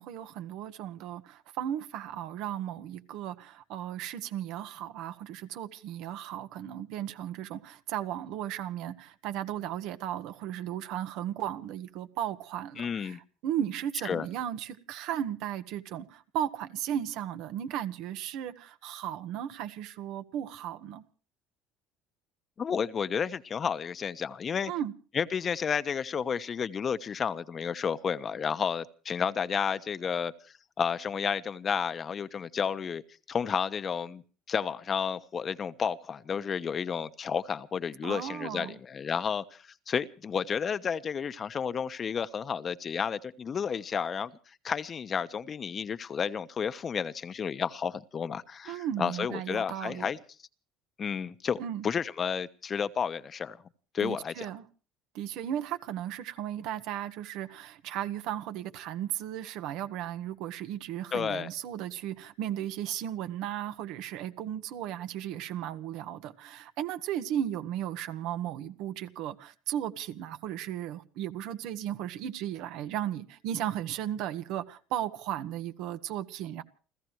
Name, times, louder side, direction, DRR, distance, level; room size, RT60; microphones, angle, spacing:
voice 1, 0.0-13.2 13.4-21.0 24.7-24.9 38.0-38.8 48.7-50.1 51.6-51.8 54.0-54.6 55.1-76.6, right 11 dB, 70° right, 1.6 m, -35 dB
voice 2, 12.8-13.2 14.0-14.3 22.6-24.7 25.1-30.3 30.8-33.0 33.3-34.2 34.5-50.2 51.0-53.6 53.9-54.5 61.1-61.5, left 7 dB, 40° left, 1.1 m, -31 dB
29.5 x 15.0 x 3.2 m
supercardioid pair, 80°, 0 cm